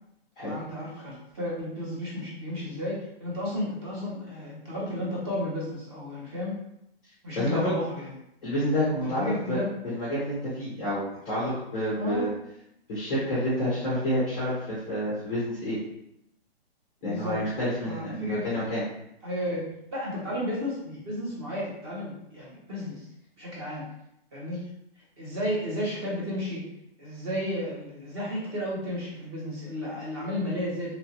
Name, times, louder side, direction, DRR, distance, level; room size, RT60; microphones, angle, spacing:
voice 1, 0.4-6.6 7.2-8.1 9.1-9.7 11.9-12.3 17.0-17.4 17.8-18.5 19.2-23.1 23.4-23.9 24.3-24.6 25.2-26.7 27.0-31.0, equal, 25° right, -5 dB, 0.8 m, -33 dB
voice 2, 7.4-7.7 8.4-9.6 9.8-12.3 12.9-15.8 17.0-18.8, equal, 10° left, -11 dB, 0.4 m, -29 dB
2.9 x 2.4 x 2.8 m, 0.79 s
hypercardioid pair, 165°, 31 cm